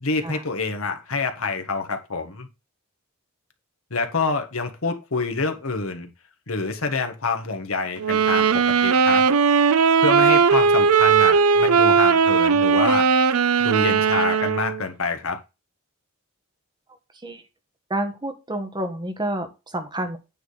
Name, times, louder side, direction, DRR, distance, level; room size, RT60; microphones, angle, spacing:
voice 1, 0.0-2.5 3.9-6.1 6.5-9.2 10.0-13.1 13.6-15.4, left 4 dB, 70° left, 6 dB, 1.5 m, -27 dB
sound 1, 8.0-14.8, right 6 dB, 80° right, 0.6 m, -18 dB
voice 2, 17.9-20.2, right 1 dB, 20° right, 5 dB, 1.4 m, -29 dB
9.3 x 3.7 x 6.5 m, 0.27 s
head